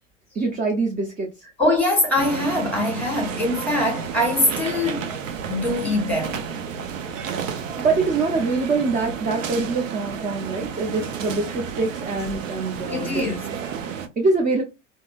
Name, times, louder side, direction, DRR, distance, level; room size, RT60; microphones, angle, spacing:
voice 1, 0.4-1.3 7.8-13.2 14.2-14.6, right 3 dB, 20° right, 0.6 m, -24 dB
voice 2, 1.6-5.1 5.5-6.5 12.9-13.4, left 1 dB, 5° left, 1.6 m, -23 dB
sound 1, 2.2-14.1, right 7 dB, 75° right, 0.6 m, -31 dB
3.6 x 2.1 x 2.3 m
hypercardioid pair, 80°, 38 cm